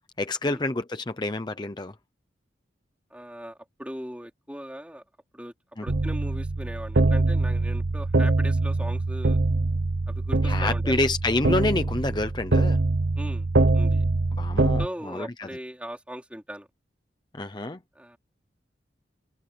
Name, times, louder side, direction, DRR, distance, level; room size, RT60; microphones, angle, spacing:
voice 1, 0.2-1.9 5.8-5.9 10.4-12.8 14.4-15.5 17.3-17.8, left 2 dB, 25° left, 0.8 m, -28 dB
voice 2, 3.1-5.0 5.3-5.5 5.8-9.4 10.1-11.1 13.2-13.5 13.7-14.0 14.8-16.7 17.9-18.2, equal, 5° right, 4.1 m, -39 dB
sound 1, 5.9-14.9, right 2 dB, 75° right, 0.9 m, -24 dB
open air
head